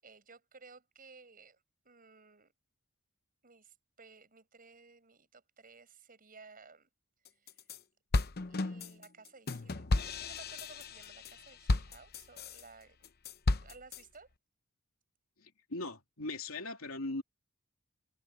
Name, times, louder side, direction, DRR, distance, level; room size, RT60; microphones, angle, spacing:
voice 1, 0.0-2.5 3.4-6.9 7.4-7.5 8.5-13.1 13.6-14.3, right 4 dB, 40° right, 7.4 m, -57 dB
sound 1, 7.3-7.8 8.1-12.6 13.0-14.0, left 2 dB, 45° left, 0.8 m, -33 dB
voice 2, 15.4-17.2, left 2 dB, 75° left, 3.2 m, -39 dB
head